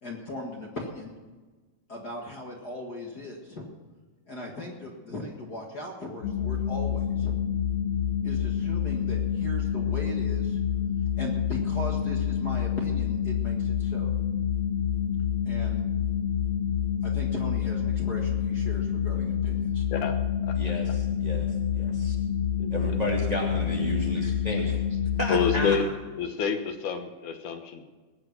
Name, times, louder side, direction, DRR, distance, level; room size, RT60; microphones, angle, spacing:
voice 1, 0.0-1.1 1.9-3.6 4.3-7.4 8.2-10.6 11.1-14.1 15.4-15.8 17.0-19.9 24.6-24.7, left 1 dB, 40° left, -1 dB, 1.7 m, -38 dB
sound 1, 6.2-25.8, left 8 dB, 55° left, 1.9 m, -28 dB
voice 2, 20.5-22.2 22.7-24.8 25.2-25.8, right 1 dB, 15° right, -2 dB, 2.1 m, -32 dB
voice 3, 22.6-23.0 25.3-25.8 26.2-28.0, left 6 dB, 75° left, 6 dB, 2.5 m, -28 dB
20.5 x 8.6 x 6.0 m, 1.3 s
omnidirectional pair, 3.7 m